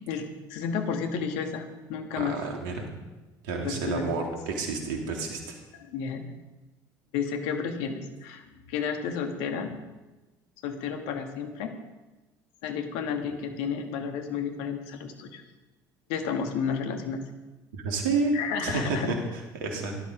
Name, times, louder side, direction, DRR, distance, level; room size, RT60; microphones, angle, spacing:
voice 1, 0.5-2.4 3.6-4.1 5.7-6.3 7.1-9.8 10.6-11.7 12.6-15.4 16.1-17.2 18.3-19.1, left 6 dB, 70° left, 5 dB, 2.3 m, -31 dB
voice 2, 2.2-2.9 3.4-5.6 17.7-18.4 18.6-20.0, right 3 dB, 75° right, 2 dB, 3.3 m, -30 dB
17.5 x 12.0 x 5.3 m, 1.1 s
hypercardioid pair, 65°, 11 cm